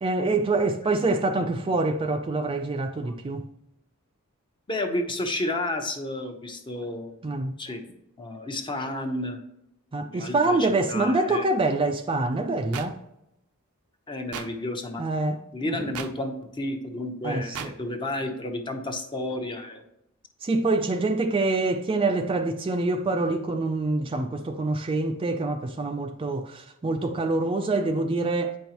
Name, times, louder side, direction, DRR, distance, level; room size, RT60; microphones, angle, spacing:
voice 1, 0.0-3.5 7.2-7.6 9.9-13.0 15.0-15.4 15.7-15.9 17.2-17.7 20.4-28.6, right 2 dB, 25° right, 0.4 m, -25 dB
voice 2, 4.7-7.2 7.6-7.8 8.2-9.4 10.0-11.5 14.1-15.0 15.5-19.8, left 1 dB, 20° left, 0.8 m, -31 dB
sound 1, 12.7-12.9 14.3-14.5 15.9-16.1 17.5-17.7, right 7 dB, 85° right, 0.6 m, -34 dB
8.3 x 5.3 x 3.0 m
head